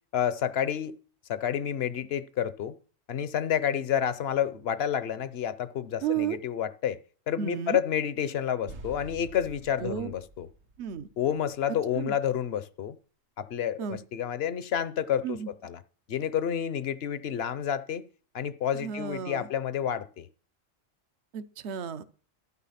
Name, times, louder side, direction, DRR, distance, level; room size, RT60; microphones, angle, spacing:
voice 1, 0.1-0.9 1.3-2.7 3.1-7.0 7.3-10.5 11.2-13.0 13.4-15.8 16.1-18.0 18.3-20.3, left 9 dB, 55° left, 0.9 m, -29 dB
voice 2, 6.0-6.4 7.4-7.8 9.8-10.1 10.8-11.1 11.9-12.2 13.8-14.0 15.2-15.5 18.7-19.5 21.3-22.0, right 8 dB, 60° right, 1.0 m, -32 dB
sound 1, 8.7-11.6, right 3 dB, 75° right, 1.7 m, -46 dB
12.5 x 9.3 x 5.7 m
omnidirectional pair, 1.4 m